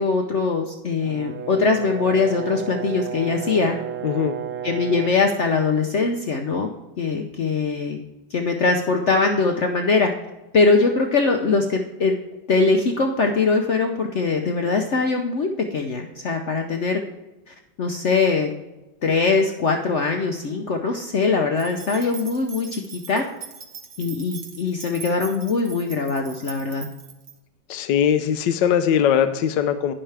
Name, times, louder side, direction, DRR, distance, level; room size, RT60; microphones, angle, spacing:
voice 1, 0.0-3.8 4.6-6.7 7.0-8.0 8.3-10.1 10.5-12.2 12.5-17.0 17.5-18.5 19.0-23.2 24.0-26.9, left 4 dB, 55° left, 3 dB, 0.8 m, -22 dB
Brass instrument, 1.0-5.3, right 8 dB, 75° right, 0.7 m, -32 dB
voice 2, 4.0-4.3 27.7-29.9, left 8 dB, 80° left, 9 dB, 1.3 m, -20 dB
sound 1, 21.6-27.3, right 6 dB, 55° right, 1.6 m, -41 dB
11.0 x 9.9 x 3.3 m, 1.1 s
omnidirectional pair, 1.9 m